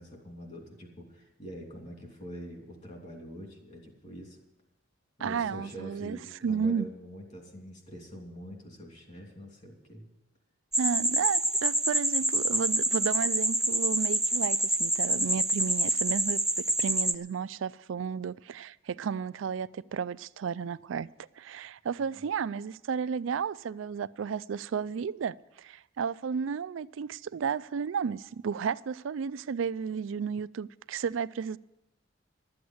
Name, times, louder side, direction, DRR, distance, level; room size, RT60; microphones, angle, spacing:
voice 1, 0.0-4.4 5.2-10.1 22.1-22.2, equal, 35° left, 2.9 m, -45 dB
voice 2, 5.2-6.2 6.4-6.9 10.8-21.1 21.4-31.6, right 6 dB, 70° right, 0.4 m, -33 dB
sound 1, 10.7-17.1, right 1 dB, 5° right, 0.4 m, -27 dB
12.5 x 7.8 x 9.5 m
head